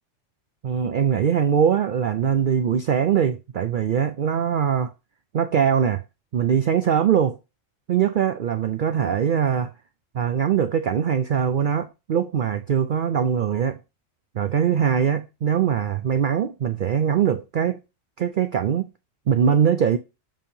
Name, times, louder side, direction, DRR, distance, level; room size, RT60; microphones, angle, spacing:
voice 1, 0.6-4.9 5.3-6.0 6.3-7.4 7.9-9.7 10.1-13.8 14.3-17.8 18.2-18.9 19.3-20.0, right 8 dB, 65° right, 0.5 m, -22 dB
7.3 x 2.8 x 5.3 m
omnidirectional pair, 1.4 m